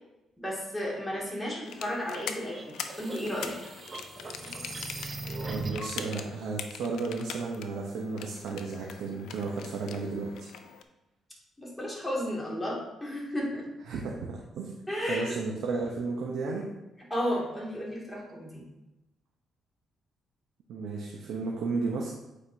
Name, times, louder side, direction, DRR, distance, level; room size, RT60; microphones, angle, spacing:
voice 1, 0.4-3.6 11.6-13.7 14.9-15.4 17.1-18.6, equal, 5° left, -4 dB, 2.4 m, -33 dB
sound 1, 1.6-10.8, left 7 dB, 80° left, 0.5 m, -43 dB
sound 2, 2.5-6.0, right 2 dB, 35° right, 0.8 m, -39 dB
voice 2, 5.5-10.5 13.9-14.7 15.1-16.7 20.7-22.1, right 4 dB, 80° right, -1 dB, 0.9 m, -33 dB
8.3 x 5.0 x 2.8 m, 0.98 s
cardioid pair, 90°, 0 cm